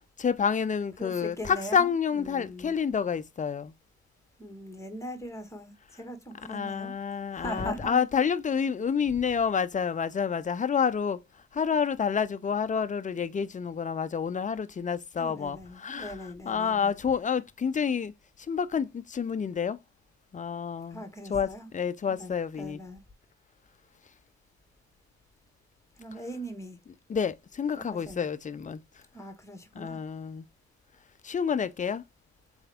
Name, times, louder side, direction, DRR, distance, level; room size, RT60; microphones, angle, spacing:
voice 1, 0.2-3.7 6.5-11.2 11.5-16.2 16.5-18.1 18.5-19.8 20.3-21.0 21.3-22.8 27.1-28.8 29.7-30.4 31.2-32.0, left 6 dB, 25° left, 0.5 m, -29 dB
voice 2, 1.0-2.8 4.4-7.0 7.3-8.0 15.2-16.9 20.9-21.7 22.1-23.0 26.0-26.8 27.8-28.3 29.1-30.0, equal, 10° left, 1.6 m, -40 dB
4.4 x 3.5 x 3.5 m
cardioid pair, 90°, 30 cm